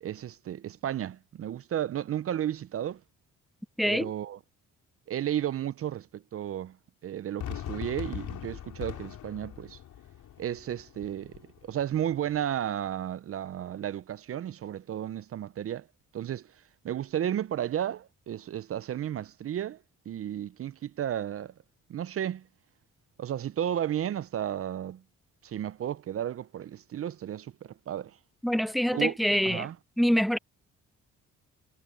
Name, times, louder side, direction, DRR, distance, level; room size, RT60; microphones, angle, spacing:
voice 1, 0.0-3.0 3.9-4.4 5.1-6.8 7.0-9.8 10.4-15.9 16.1-21.5 21.9-22.5 23.2-25.0 25.4-28.2 28.9-29.1 29.5-29.7, right 10 dB, 50° right, 0.6 m, -33 dB
voice 2, 3.8-4.1 28.4-29.7 30.0-30.4, equal, ahead, 0.7 m, -25 dB
Fireworks, 7.4-12.4, left 11 dB, 75° left, 6.2 m, -41 dB
cardioid pair, 90°, 30 cm